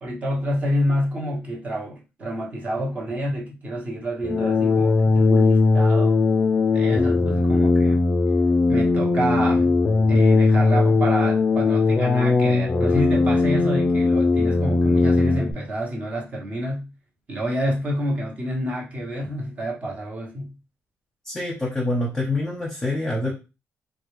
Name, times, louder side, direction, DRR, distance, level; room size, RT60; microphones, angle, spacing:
voice 1, 0.0-6.2 6.7-8.0 8.7-9.7 10.1-16.9 17.3-20.5, equal, 30° right, 1.0 m, -28 dB
sound 1, 4.2-15.5, left 3 dB, 30° left, 0.4 m, -19 dB
voice 2, 21.2-23.3, left 2 dB, 15° left, 0.9 m, -26 dB
3.8 x 2.2 x 3.1 m
cardioid pair, 170°, 5 cm